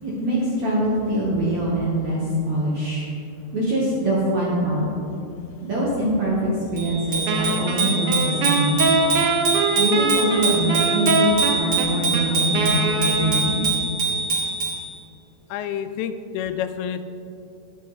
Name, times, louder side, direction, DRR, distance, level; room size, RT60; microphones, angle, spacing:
voice 1, 0.0-3.1 3.5-4.9 5.6-9.0 9.8-13.6, right 1 dB, 65° right, -6 dB, 1.8 m, -23 dB
Bicycle bell, 6.8-14.9, right 3 dB, 35° right, 3.0 m, -24 dB
Wind instrument woodwind instrument, 7.3-13.8, right 3 dB, 90° right, 3.1 m, -23 dB
voice 2, 15.5-17.0, left 9 dB, 85° left, 10 dB, 2.7 m, -28 dB
11.0 x 10.0 x 3.2 m, 2.6 s
omnidirectional pair, 5.0 m